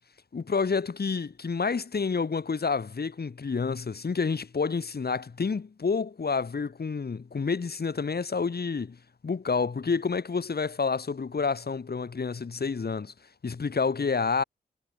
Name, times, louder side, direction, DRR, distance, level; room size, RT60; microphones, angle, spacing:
voice 1, 0.3-9.0 9.2-13.1 13.4-14.4, left 5 dB, 55° left, 3.5 m, -29 dB
cardioid pair, 55°, 20 cm